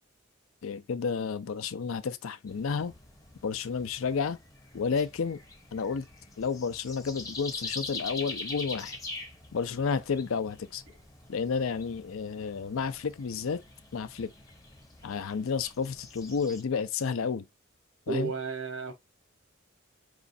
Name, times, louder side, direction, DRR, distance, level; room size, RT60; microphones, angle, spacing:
voice 1, 0.6-2.9 3.4-4.4 4.7-5.4 5.7-6.1 6.4-9.0 9.5-10.8 11.3-13.6 13.9-14.3 15.0-17.5 18.1-18.3, left 5 dB, 75° left, 0.5 m, -31 dB
sound 1, 2.5-16.6, left 3 dB, 15° left, 0.7 m, -44 dB
voice 2, 18.1-18.9, right 5 dB, 75° right, 1.1 m, -32 dB
4.9 x 3.1 x 2.6 m
head